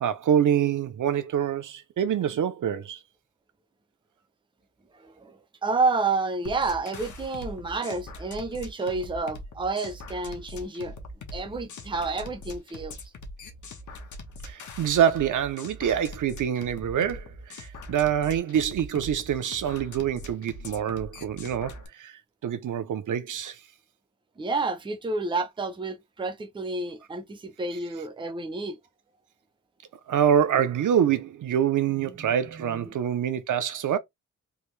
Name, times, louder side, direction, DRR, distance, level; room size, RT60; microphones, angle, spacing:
voice 1, 0.0-3.0 14.4-22.1 22.4-23.6 30.1-34.0, right 9 dB, 80° right, 0.6 m, -26 dB
voice 2, 5.0-5.3 5.6-10.9 11.3-13.0 24.4-28.8 32.0-32.1 32.5-32.9, right 3 dB, 15° right, 0.5 m, -30 dB
sound 1, 6.5-21.9, left 1 dB, 70° left, 1.0 m, -42 dB
3.5 x 2.6 x 3.1 m
wide cardioid pair, 170°, 31 cm